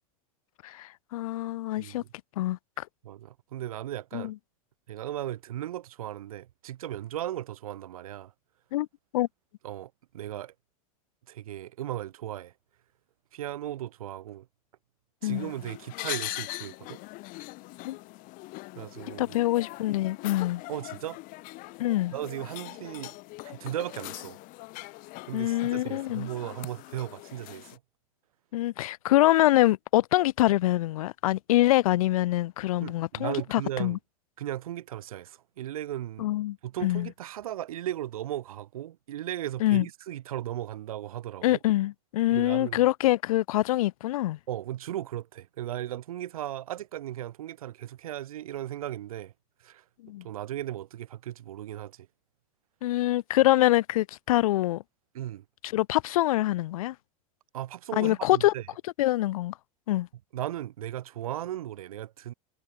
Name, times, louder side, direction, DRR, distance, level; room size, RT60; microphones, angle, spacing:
voice 1, 0.6-2.0 2.4-2.8 4.1-4.3 8.7-8.9 9.1-9.3 15.2-15.5 17.8-18.0 19.2-20.6 21.8-22.1 25.3-26.3 28.5-34.0 36.2-36.6 36.8-37.1 39.6-39.8 41.4-44.4 50.0-50.2 52.8-54.8 55.6-56.9 58.0-58.5 59.0-59.5 59.9-60.1, left 16 dB, 80° left, 1.4 m, -25 dB
voice 2, 1.8-2.1 3.0-4.3 4.9-8.3 9.6-10.5 11.3-12.5 13.3-14.5 15.2-17.0 18.7-19.4 20.7-21.2 22.1-23.1 23.4-24.4 25.3-27.8 32.8-34.0 34.4-36.3 36.6-41.6 42.3-42.8 44.5-49.3 49.6-49.8 50.2-52.1 55.1-55.4 57.5-58.7 60.3-62.3, right 12 dB, 85° right, 2.7 m, -36 dB
sound 1, 15.2-27.8, left 23 dB, 50° left, 1.9 m, -41 dB
supercardioid pair, 120°, 18 cm